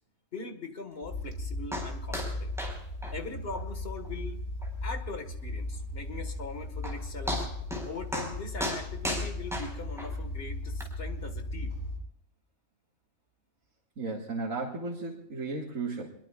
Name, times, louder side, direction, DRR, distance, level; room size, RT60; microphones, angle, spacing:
voice 1, 0.3-2.5 3.1-4.4 4.8-7.5 7.9-11.8, left 3 dB, 50° left, 6 dB, 2.0 m, -41 dB
sound 1, 1.0-12.0, left 2 dB, 85° left, 4.0 m, -37 dB
sound 2, 1.7-1.9 2.1-2.3 2.6-2.8 3.0-3.1 3.5-3.6 4.0-4.1 4.6-4.7 6.4-6.5 6.8-7.0 7.3-7.8 8.1-8.3 8.6-10.1 10.8-10.9, left 1 dB, ahead, 4.9 m, -33 dB
voice 2, 14.0-16.1, right 3 dB, 85° right, -2 dB, 2.4 m, -35 dB
27.0 x 22.0 x 2.5 m, 0.75 s
omnidirectional pair, 1.4 m